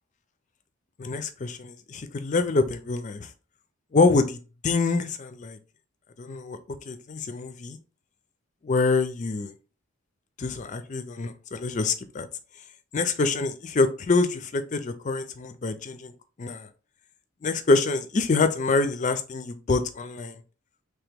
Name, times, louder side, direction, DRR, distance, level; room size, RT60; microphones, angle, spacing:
voice 1, 1.0-3.3 3.9-4.4 4.6-5.6 6.2-6.6 6.9-7.8 8.6-9.5 10.4-12.3 12.9-16.1 16.4-16.7 17.4-20.4, left 3 dB, 35° left, 0.4 m, -25 dB
3.3 x 2.9 x 3.5 m
head